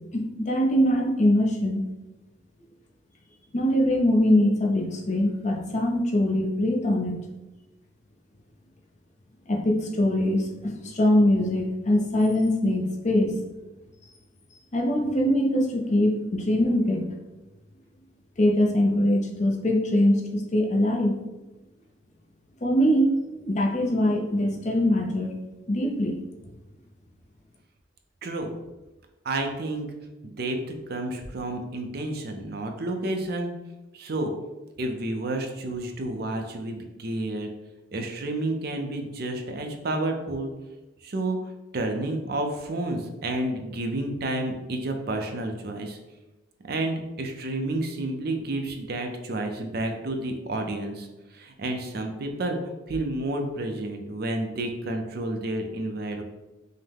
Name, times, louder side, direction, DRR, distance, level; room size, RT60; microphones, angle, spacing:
voice 1, 0.1-1.8 3.5-7.2 9.5-13.4 14.7-17.1 18.4-21.2 22.6-25.3 25.7-26.2, left 1 dB, 35° left, 1 dB, 0.6 m, -23 dB
voice 2, 28.2-28.5 29.2-29.9 30.2-30.6 30.9-33.5 33.9-34.3 34.8-37.5 37.9-40.5 41.0-46.0 46.6-56.2, right 2 dB, 50° right, 4 dB, 0.5 m, -30 dB
5.5 x 2.1 x 3.4 m, 1.1 s
head